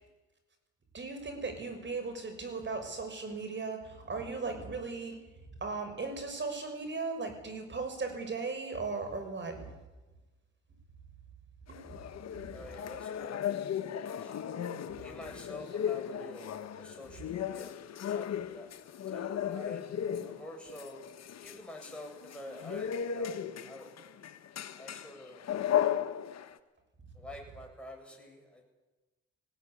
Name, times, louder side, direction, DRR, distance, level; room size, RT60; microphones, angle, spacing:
voice 1, 0.9-5.2 5.6-9.7 11.7-12.3 17.1-17.2 20.3-20.4, right 4 dB, 40° right, 6 dB, 6.3 m, -37 dB
sound 1, 11.7-26.6, left 9 dB, 60° left, 1.5 m, -36 dB
voice 2, 12.5-13.6 13.8-14.4 15.0-17.7 18.1-18.7 19.1-21.0 21.4-23.9 24.8-25.9 27.1-28.6, left 1 dB, 5° left, -1 dB, 7.8 m, -48 dB
20.0 x 17.5 x 9.9 m, 1.2 s
cardioid pair, 90°, 30 cm